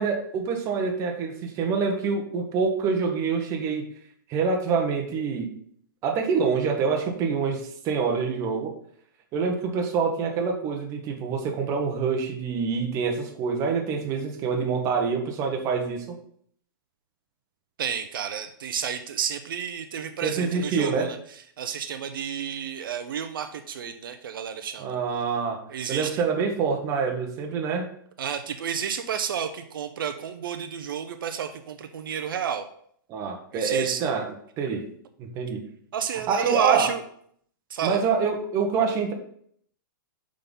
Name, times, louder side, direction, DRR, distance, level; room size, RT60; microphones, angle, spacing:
voice 1, 0.0-3.9 4.3-5.5 6.0-8.7 9.3-16.2 20.2-21.1 24.8-25.6 25.9-27.9 33.1-34.3 34.6-34.9 35.2-35.6 36.3-36.9 37.8-39.1, right 5 dB, 25° right, 3 dB, 1.0 m, -26 dB
voice 2, 17.8-25.0 25.7-26.2 28.2-32.7 33.5-34.0 35.9-37.0 37.7-38.0, right 8 dB, 70° right, 8 dB, 0.6 m, -31 dB
5.6 x 3.8 x 5.3 m, 0.64 s
hypercardioid pair, 155°, 12 cm